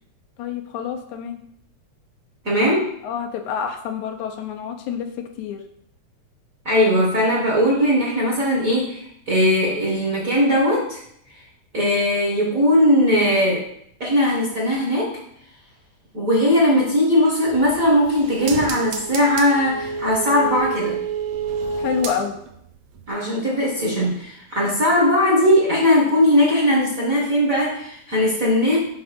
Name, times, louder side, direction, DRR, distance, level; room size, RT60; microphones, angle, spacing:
voice 1, 0.4-1.4 3.0-5.1 5.4-5.6 21.8-22.4 24.6-24.7, left 7 dB, 80° left, 4 dB, 2.2 m, -28 dB
voice 2, 2.4-2.9 6.6-11.0 11.7-13.6 14.0-15.2 16.1-21.0 23.1-28.8, left 1 dB, 35° right, -4 dB, 1.4 m, -19 dB
sound 1, 17.5-22.6 23.0-23.1, right 5 dB, 85° right, 1.1 m, -29 dB
6.0 x 5.4 x 5.1 m, 0.71 s
omnidirectional pair, 3.3 m